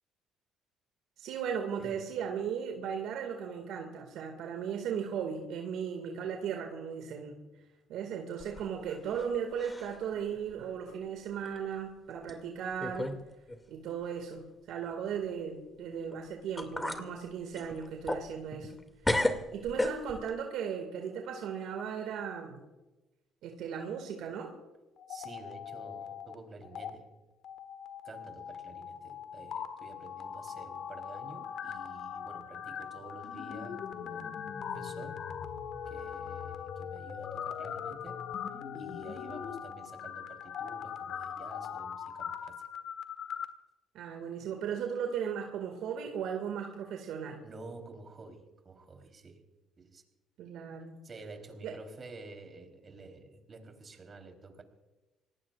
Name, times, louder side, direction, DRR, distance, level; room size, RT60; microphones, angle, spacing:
voice 1, 1.2-7.4 7.9-13.1 13.7-18.7 19.1-19.2 19.5-22.6 23.4-24.5 43.9-47.4 50.4-51.0 51.6-51.7, right 7 dB, 70° right, 2.1 m, -36 dB
sound 1, 8.4-9.3 9.6-10.0 10.5-10.6 11.4-11.6 12.3-12.4 12.8-13.2 13.5-13.6 16.1-16.2 16.6-17.1 17.5-18.8 19.0-20.3, left 1 dB, 15° left, 2.4 m, -33 dB
sound 2, 25.0-26.3 26.6-26.9 27.4-43.4, left 8 dB, 60° left, 1.5 m, -40 dB
voice 2, 25.1-27.2 28.0-35.2 35.9-38.3 38.8-42.6 47.4-49.4 49.8-50.0 51.0-54.6, right 3 dB, 40° right, 3.7 m, -50 dB
26.5 x 18.5 x 2.5 m
hypercardioid pair, 60°, 0 cm